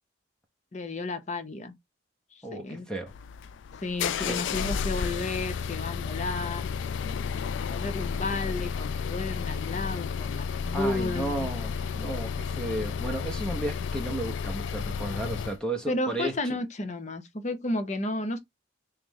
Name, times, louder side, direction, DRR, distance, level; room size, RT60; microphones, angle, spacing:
voice 1, 0.7-1.7 2.3-2.9 3.8-6.7 7.7-11.5 15.9-18.4, left 2 dB, 40° left, 0.7 m, -32 dB
voice 2, 2.4-3.1 4.2-4.4 10.7-16.5, right 1 dB, 5° left, 0.7 m, -33 dB
sound 1, 3.1-15.6, left 6 dB, 75° left, 0.3 m, -32 dB
3.2 x 3.0 x 3.6 m
head